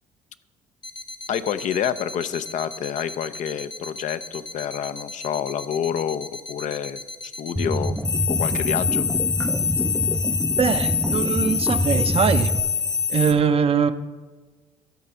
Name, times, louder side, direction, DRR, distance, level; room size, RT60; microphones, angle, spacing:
sound 1, 0.8-13.3, left 6 dB, 30° left, 0.9 m, -27 dB
voice 1, 1.3-7.0 7.4-8.0 8.3-9.1, left 9 dB, 55° left, 0.5 m, -28 dB
sound 2, 7.6-12.6, equal, ahead, 0.4 m, -26 dB
voice 2, 10.2-12.5 13.1-13.9, right 6 dB, 40° right, 0.6 m, -22 dB
12.0 x 4.1 x 6.8 m
supercardioid pair, 70°, 15 cm